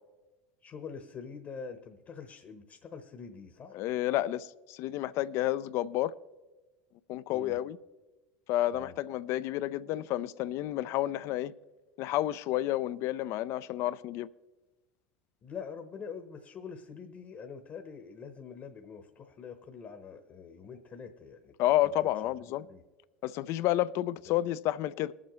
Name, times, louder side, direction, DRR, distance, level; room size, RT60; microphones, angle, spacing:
voice 1, 0.6-3.8 7.3-7.6 8.7-9.0 15.4-21.5 22.6-22.8 24.3-24.5, left 6 dB, 40° left, 1.0 m, -45 dB
voice 2, 3.7-6.1 7.1-7.8 8.5-11.5 12.0-14.3 21.6-22.7 23.2-25.1, left 14 dB, 55° left, 0.4 m, -30 dB
21.0 x 7.4 x 3.1 m
hypercardioid pair, 80°, 6 cm